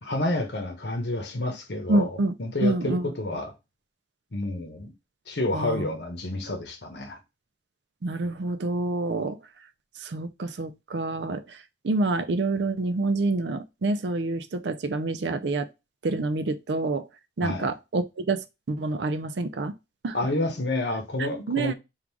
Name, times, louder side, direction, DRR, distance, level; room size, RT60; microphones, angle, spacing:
voice 1, 0.0-3.5 4.3-4.9 5.3-7.2 17.4-17.7 20.1-21.7, left 1 dB, 75° left, 1.1 m, -29 dB
voice 2, 1.9-2.3 2.6-3.1 5.5-5.9 8.0-9.4 10.0-15.7 16.0-17.1 17.4-19.7 20.0-20.2 21.5-21.7, right 2 dB, 80° right, 0.5 m, -27 dB
3.7 x 2.5 x 4.6 m
head